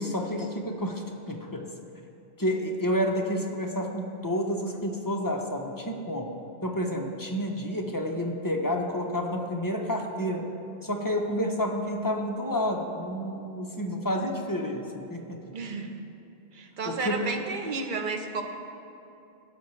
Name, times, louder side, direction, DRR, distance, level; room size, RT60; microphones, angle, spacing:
voice 1, 0.0-1.6 2.4-6.3 6.6-10.4 10.8-15.4 16.8-17.3, equal, 25° left, 1 dB, 0.5 m, -30 dB
voice 2, 15.5-16.0 16.5-18.4, right 4 dB, 50° right, 4 dB, 0.8 m, -32 dB
16.5 x 5.7 x 3.2 m, 2.7 s
omnidirectional pair, 1.2 m